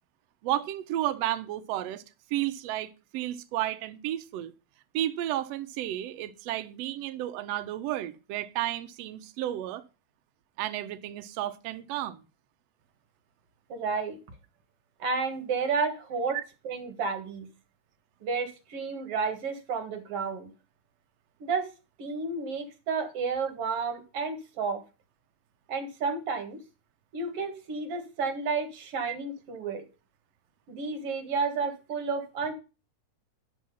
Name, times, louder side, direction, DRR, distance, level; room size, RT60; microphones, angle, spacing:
voice 1, 0.4-2.0 2.3-4.5 4.9-9.8 10.6-12.2 16.3-16.4 29.1-29.2, right 13 dB, 80° right, 1.5 m, -32 dB
voice 2, 13.7-14.2 15.0-16.4 16.6-17.5 18.2-20.5 21.4-21.7 22.0-24.8 25.7-26.6 27.1-29.8 30.7-32.5, right 4 dB, 55° right, 2.2 m, -31 dB
10.0 x 6.3 x 5.4 m
omnidirectional pair, 3.7 m